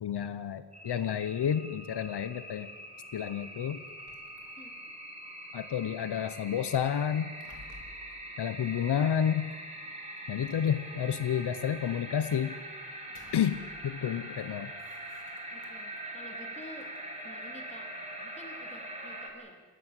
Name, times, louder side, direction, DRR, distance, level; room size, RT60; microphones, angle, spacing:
voice 1, 0.0-2.7 3.1-3.8 5.5-7.3 8.4-9.5 10.3-12.6 13.3-13.6 13.8-14.7, left 8 dB, 85° left, 12 dB, 1.1 m, -30 dB
sound 1, 0.7-19.3, right 1 dB, 15° right, 5.1 m, -43 dB
sound 2, 3.9-5.0 7.0-8.3 9.5-9.6 10.2-11.3 12.9-14.1 14.4-16.0 16.5-18.1, left 2 dB, 50° left, 3.6 m, -57 dB
voice 2, 15.5-16.9 17.2-19.6, left 1 dB, 15° left, 2 dB, 3.6 m, -50 dB
29.5 x 13.0 x 9.2 m, 1.4 s
wide cardioid pair, 155°, 39 cm